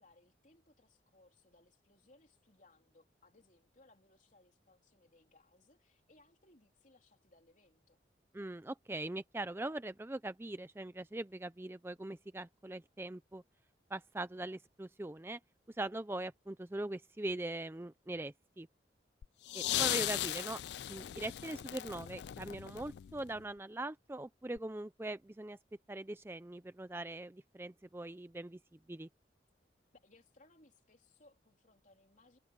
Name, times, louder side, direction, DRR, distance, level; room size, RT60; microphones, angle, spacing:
voice 1, 0.0-8.0 29.9-32.4, left 2 dB, 45° left, 3.7 m, -66 dB
voice 2, 8.3-13.4 13.9-15.4 15.7-18.7 19.5-20.6 20.9-25.6 25.9-29.1, right 2 dB, 15° right, 0.4 m, -41 dB
sound 1, 19.2-23.4 24.6-24.7, left 14 dB, 60° left, 0.3 m, -37 dB
head